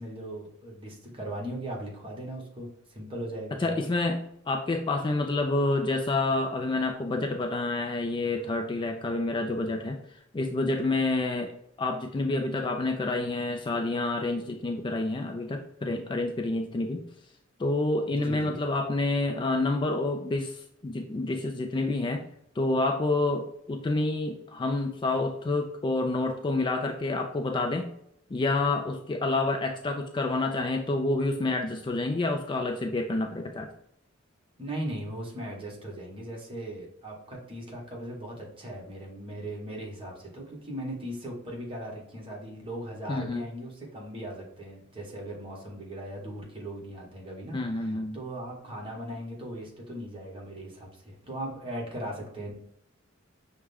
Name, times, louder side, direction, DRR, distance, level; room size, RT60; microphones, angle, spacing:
voice 1, 0.0-3.9 18.1-18.6 34.6-52.5, right 1 dB, 30° right, -2 dB, 1.2 m, -38 dB
voice 2, 3.6-10.0 10.3-17.0 17.6-22.2 22.6-27.9 28.3-33.7 43.1-43.4 47.5-48.2, left 2 dB, 25° left, 4 dB, 0.3 m, -28 dB
6.0 x 2.2 x 3.4 m, 0.76 s
head